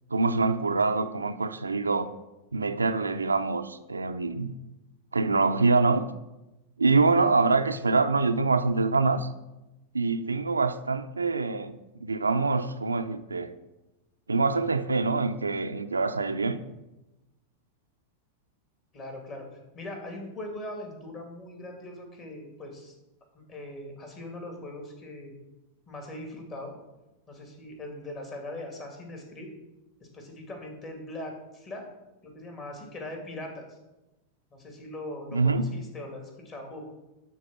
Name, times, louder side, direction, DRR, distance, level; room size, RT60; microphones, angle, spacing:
voice 1, 0.1-2.1 2.5-4.5 5.1-6.0 6.8-9.3 9.9-11.7 12.0-13.6 14.3-16.6 35.3-35.7, right 3 dB, 80° right, 8 dB, 0.5 m, -25 dB
voice 2, 18.9-19.5 19.7-22.9 23.3-25.4 25.9-26.7 27.3-29.5 30.0-31.8 32.2-33.7 34.5-36.8, left 1 dB, 30° left, 2 dB, 2.5 m, -40 dB
11.5 x 4.2 x 6.1 m, 0.99 s
figure-of-eight pair, 90°, 0 cm